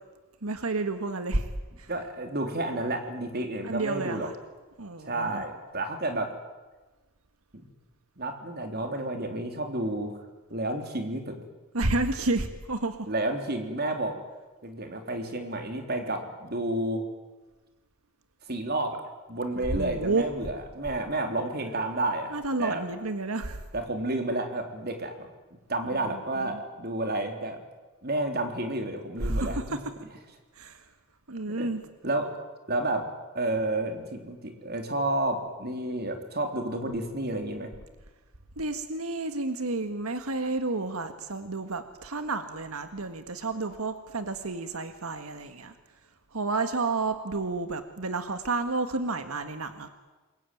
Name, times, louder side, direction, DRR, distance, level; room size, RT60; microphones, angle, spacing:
voice 1, 0.4-1.5 1.8-1.9 3.6-4.3 4.8-5.4 11.7-13.1 19.6-20.3 22.3-23.6 26.0-26.6 29.2-29.8 30.6-30.9 31.3-31.8 38.6-45.7 46.3-49.9, right 3 dB, 90° right, 8 dB, 1.7 m, -30 dB
voice 2, 1.9-4.3 5.0-6.3 7.5-7.6 8.2-10.2 10.5-11.4 13.1-14.2 14.6-17.0 18.5-19.0 19.3-22.3 22.6-22.8 23.7-25.3 25.7-27.6 28.0-29.8 31.6-31.7 32.0-33.1 33.3-37.7, right 2 dB, 45° right, 5 dB, 3.7 m, -31 dB
27.5 x 22.5 x 9.3 m, 1.2 s
head